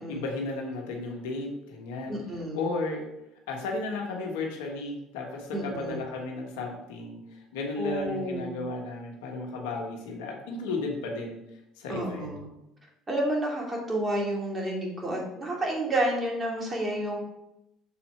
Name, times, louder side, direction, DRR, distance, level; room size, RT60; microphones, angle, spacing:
voice 1, 0.1-2.2 2.5-3.0 3.5-11.4 11.8-12.4, left 3 dB, 80° left, 1 dB, 1.3 m, -34 dB
voice 2, 2.1-2.6 5.5-6.0 7.8-8.6 11.9-12.5 13.1-17.2, right 1 dB, 25° right, -2 dB, 2.5 m, -30 dB
7.0 x 4.4 x 4.3 m, 0.86 s
hypercardioid pair, 75°, 0 cm